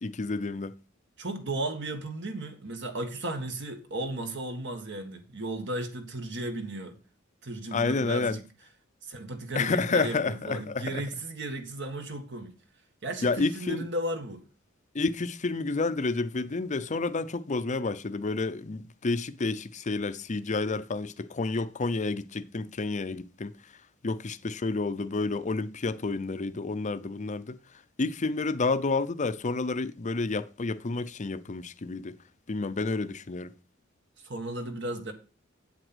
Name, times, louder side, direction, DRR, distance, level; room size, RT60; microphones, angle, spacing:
voice 1, 0.0-0.7 7.7-8.4 9.6-11.0 13.2-13.8 14.9-23.5 24.0-27.6 28.0-32.2 32.5-33.5, left 3 dB, 35° left, 0.6 m, -30 dB
voice 2, 1.2-7.0 7.4-8.4 9.0-12.5 13.0-14.4 34.2-35.1, right 1 dB, 60° right, 1.8 m, -35 dB
8.3 x 8.0 x 6.1 m
head